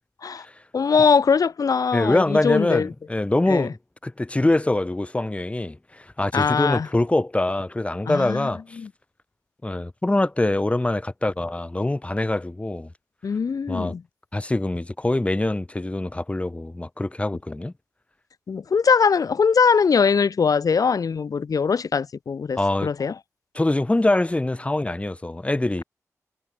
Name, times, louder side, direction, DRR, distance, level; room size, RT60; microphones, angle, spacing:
voice 1, 0.7-2.9 3.5-3.7 6.3-6.9 8.1-8.5 8.8-8.9 13.2-14.0 18.5-23.1, left 5 dB, 80° left, 3.4 m, -21 dB
voice 2, 1.9-8.8 9.6-12.9 13.7-13.9 14.3-17.7 22.6-22.9 23.5-25.8, left 2 dB, 20° left, 5.3 m, -24 dB
wide cardioid pair, 105°, 6 cm